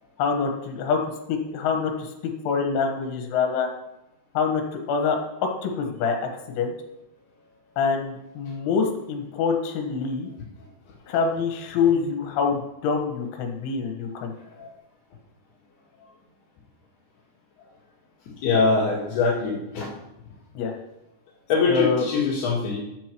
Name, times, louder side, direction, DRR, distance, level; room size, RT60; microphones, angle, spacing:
voice 1, 0.2-1.0 1.3-2.1 2.5-3.7 4.4-5.2 5.6-6.3 6.6-6.7 7.8-10.3 11.1-14.3 20.6-20.7 21.7-22.0, left 5 dB, 80° left, 3 dB, 3.8 m, -25 dB
voice 2, 18.4-19.9 21.5-22.8, left 4 dB, 60° left, -6 dB, 3.7 m, -23 dB
12.5 x 7.7 x 4.6 m, 0.89 s
omnidirectional pair, 5.4 m